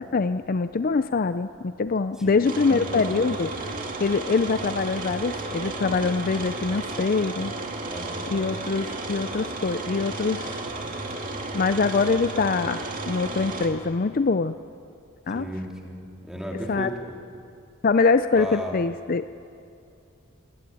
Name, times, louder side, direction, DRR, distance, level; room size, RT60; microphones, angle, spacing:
voice 1, 0.0-3.5 4.0-7.5 8.3-10.6 11.5-12.8 13.1-14.5 15.3-15.5 16.7-16.9 17.8-19.2, left 4 dB, 45° left, 11 dB, 0.5 m, -24 dB
voice 2, 2.2-3.2 7.8-8.2 15.3-17.0 18.3-18.7, equal, 5° right, -1 dB, 3.1 m, -35 dB
Room Tone - bathroom with vent fan on (close to fan), 2.4-13.7, right 2 dB, 40° right, 2.4 m, -33 dB
21.0 x 19.5 x 9.2 m, 2.5 s
head